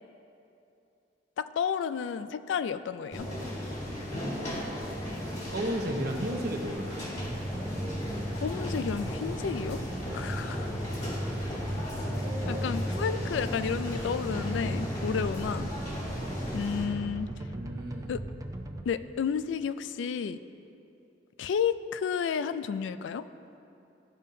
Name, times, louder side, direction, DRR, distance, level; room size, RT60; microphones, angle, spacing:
voice 1, 1.4-3.3 8.4-9.8 10.1-10.7 12.5-15.7 16.5-17.3 18.1-18.2 18.9-20.4 21.4-23.3, left 7 dB, 90° left, 13 dB, 0.3 m, -31 dB
sound 1, 3.1-16.8, left 1 dB, 40° left, 1.8 m, -35 dB
voice 2, 4.2-4.7 5.2-7.2 10.1-10.3 16.1-16.3 17.4-18.1, equal, 60° right, 2 dB, 0.9 m, -35 dB
sound 2, 7.1-18.8, right 1 dB, 20° right, 0.4 m, -39 dB
13.5 x 5.3 x 2.7 m, 2.8 s
head